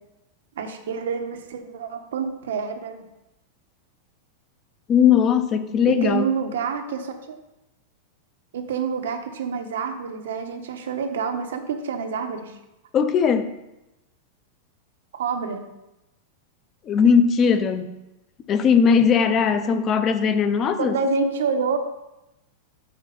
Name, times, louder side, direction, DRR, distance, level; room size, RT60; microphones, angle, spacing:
voice 1, 0.6-3.0 5.9-7.4 8.5-12.5 15.1-15.6 20.8-21.8, right 5 dB, 90° right, 6 dB, 1.2 m, -27 dB
voice 2, 4.9-6.3 12.9-13.6 16.8-18.0 18.5-21.0, left 6 dB, 30° left, 10 dB, 0.6 m, -19 dB
8.2 x 6.2 x 4.1 m, 0.94 s
supercardioid pair, 145°, 0 cm